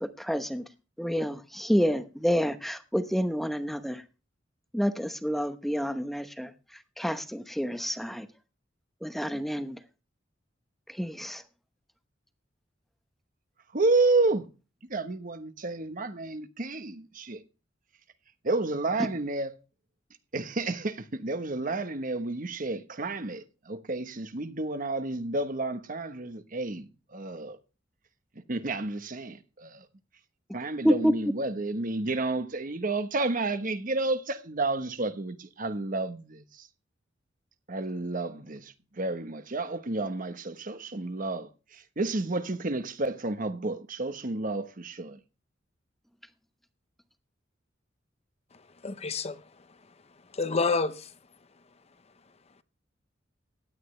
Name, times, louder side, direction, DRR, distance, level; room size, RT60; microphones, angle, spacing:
voice 1, 0.0-0.6 1.0-4.0 4.7-6.5 7.0-8.3 9.0-9.8 11.0-11.4 30.8-31.1, equal, ahead, 0.9 m, -28 dB
voice 2, 13.7-14.4 14.9-17.4 18.4-19.6 20.3-27.6 28.5-29.9 30.5-36.7 37.7-45.2, right 2 dB, 45° right, 1.1 m, -31 dB
voice 3, 48.8-49.4 50.3-51.1, left 4 dB, 35° left, 0.8 m, -28 dB
16.0 x 11.0 x 3.3 m
head